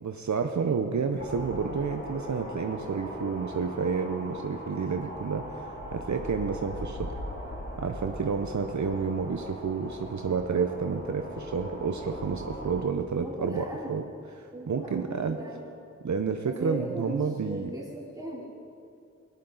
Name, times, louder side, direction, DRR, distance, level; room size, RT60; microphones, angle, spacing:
voice 1, 0.0-7.1 7.8-14.0 14.4-15.4 16.0-17.7, right 5 dB, 65° right, 6 dB, 0.7 m, -30 dB
sound 1, 1.2-12.8, equal, 35° left, 3.7 m, -39 dB
voice 2, 13.2-14.0 14.5-15.7 16.5-18.5, right 1 dB, 10° right, -5 dB, 3.5 m, -38 dB
18.0 x 11.0 x 3.9 m, 2.5 s
wide cardioid pair, 70°, 30 cm